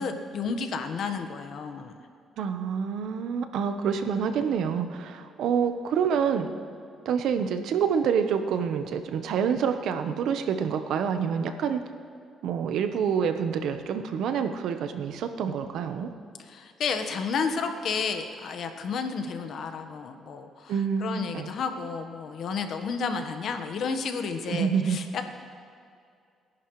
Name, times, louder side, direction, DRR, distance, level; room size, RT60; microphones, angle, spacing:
voice 1, 0.0-1.9 16.4-20.7 21.0-25.3, left 5 dB, 65° left, 7 dB, 1.3 m, -31 dB
voice 2, 2.4-6.5 7.0-11.8 12.4-16.1 20.7-21.5 24.5-25.0, right 7 dB, 80° right, 8 dB, 1.0 m, -27 dB
29.0 x 11.0 x 3.2 m, 2.3 s
cardioid pair, 90°, 0 cm